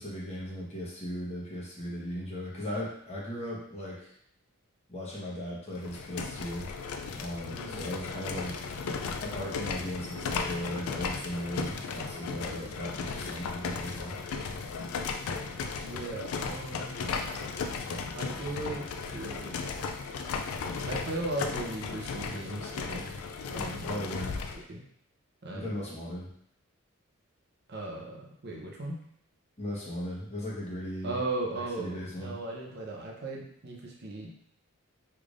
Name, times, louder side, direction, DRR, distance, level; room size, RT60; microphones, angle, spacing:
voice 1, 0.0-4.1 4.9-6.7 7.2-8.7 9.2-14.1 23.8-24.4 25.5-26.3 29.6-31.2 31.5-32.4, equal, 30° left, -6 dB, 1.1 m, -37 dB
sound 1, 5.7-24.6, left 4 dB, 75° left, 0.3 m, -36 dB
voice 2, 7.5-7.9 15.8-17.1 18.1-18.9 19.1-19.7 20.9-23.1 23.5-23.9 24.6-24.8 25.4-25.7 27.7-29.0 31.0-34.3, right 2 dB, 50° right, -1 dB, 0.7 m, -37 dB
3.3 x 3.3 x 2.5 m, 0.68 s
head